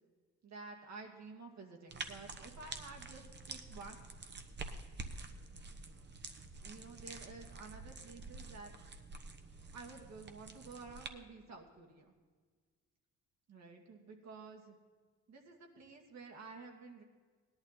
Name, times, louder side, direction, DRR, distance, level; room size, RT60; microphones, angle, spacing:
voice 1, 0.4-4.0 6.6-8.7 9.7-12.1 13.5-14.8 15.3-17.0, right 4 dB, 65° right, 2 dB, 2.4 m, -51 dB
sound 1, 1.9-11.1, right 3 dB, 35° right, 1.1 m, -48 dB
17.5 x 11.5 x 4.2 m, 1.5 s
cardioid pair, 90°, 30 cm